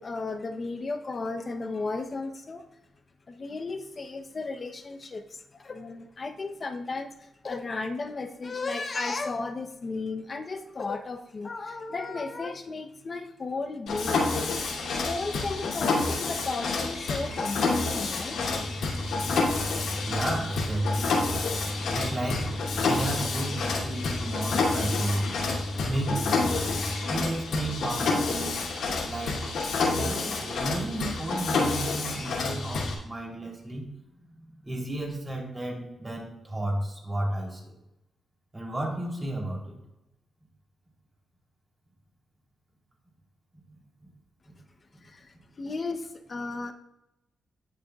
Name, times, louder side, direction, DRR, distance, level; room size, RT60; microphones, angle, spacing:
voice 1, 0.0-2.7 3.3-14.3 15.1-18.4 45.0-46.7, left 3 dB, 30° left, 7 dB, 0.8 m, -34 dB
Mechanisms, 13.9-32.9, left 3 dB, 85° left, 2.6 m, -28 dB
voice 2, 20.0-21.2 21.9-22.5 22.8-25.4 25.9-26.3 27.1-29.4 29.9-33.9 34.3-37.7 38.5-39.8 44.0-44.1 44.5-44.6, right 1 dB, 20° right, -2 dB, 3.3 m, -32 dB
18.5 x 6.9 x 2.4 m, 0.90 s
wide cardioid pair, 140°, 0 cm